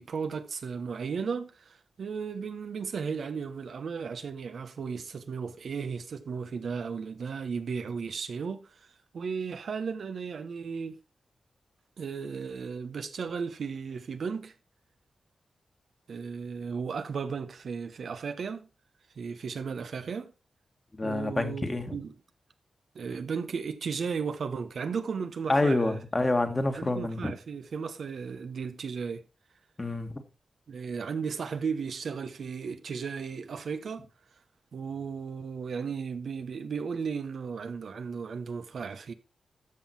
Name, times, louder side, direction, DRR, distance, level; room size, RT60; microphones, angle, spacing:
voice 1, 0.0-8.9 9.1-11.0 12.0-14.5 16.1-18.7 19.2-20.3 21.0-22.1 22.9-26.0 26.7-29.2 30.7-34.1 34.7-39.1, right 5 dB, 75° right, 1.0 m, -35 dB
voice 2, 21.0-22.0 25.5-27.3 29.8-30.1, left 2 dB, 30° left, 1.7 m, -27 dB
13.5 x 5.7 x 4.3 m
cardioid pair, 65°, 0 cm